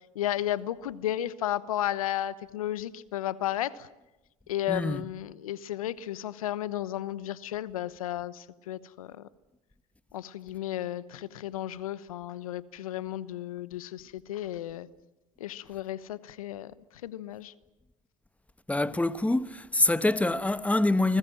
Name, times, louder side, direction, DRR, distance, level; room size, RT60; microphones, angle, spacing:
voice 1, 0.1-3.9 4.5-9.3 10.1-14.9 15.4-16.7 17.0-17.5, left 12 dB, 85° left, 1.0 m, -33 dB
voice 2, 4.7-5.0 18.7-21.2, left 2 dB, 10° left, 1.2 m, -25 dB
29.5 x 20.5 x 7.7 m
hypercardioid pair, 65°, 18 cm